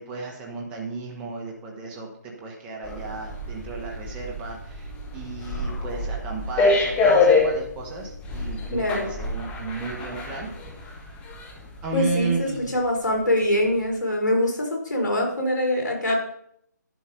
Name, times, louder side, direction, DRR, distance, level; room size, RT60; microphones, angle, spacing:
voice 1, 0.0-11.0 11.8-12.8, right 4 dB, 10° right, -1 dB, 1.4 m, -34 dB
sound 1, 2.8-11.9 12.2-12.4, left 3 dB, 10° left, 1.4 m, -26 dB
voice 2, 8.7-9.1 11.9-16.1, left 1 dB, 75° left, 1 dB, 4.7 m, -24 dB
11.5 x 6.1 x 5.3 m, 0.69 s
figure-of-eight pair, 155°, 10 cm